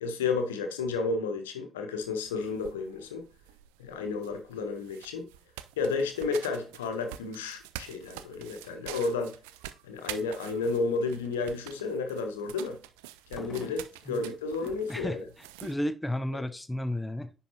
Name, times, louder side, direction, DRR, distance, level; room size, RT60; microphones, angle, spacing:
voice 1, 0.0-3.3 3.8-5.3 5.8-9.3 9.8-12.8 13.3-15.2, left 4 dB, 75° left, 0.7 m, -32 dB
sound 1, 2.0-15.8, right 13 dB, 70° right, 0.3 m, -47 dB
sound 2, 7.8-8.2 8.5-9.0 9.6-10.0 10.4-10.7 13.3-14.1, left 3 dB, 40° left, 1.2 m, -47 dB
voice 2, 14.6-17.3, left 1 dB, 10° left, 0.6 m, -33 dB
10.0 x 3.7 x 2.9 m
figure-of-eight pair, 45°, 0 cm